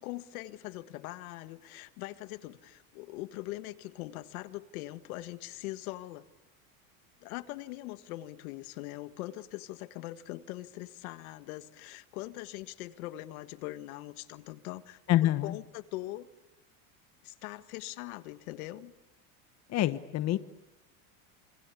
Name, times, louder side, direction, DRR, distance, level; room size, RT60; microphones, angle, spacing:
voice 1, 0.0-6.2 7.2-15.0 15.4-16.3 17.2-18.9, left 17 dB, 75° left, 12 dB, 1.7 m, -42 dB
voice 2, 15.1-15.6 19.7-20.4, left 14 dB, 35° left, 12 dB, 1.2 m, -26 dB
27.0 x 26.0 x 8.4 m, 0.93 s
supercardioid pair, 140°, 43 cm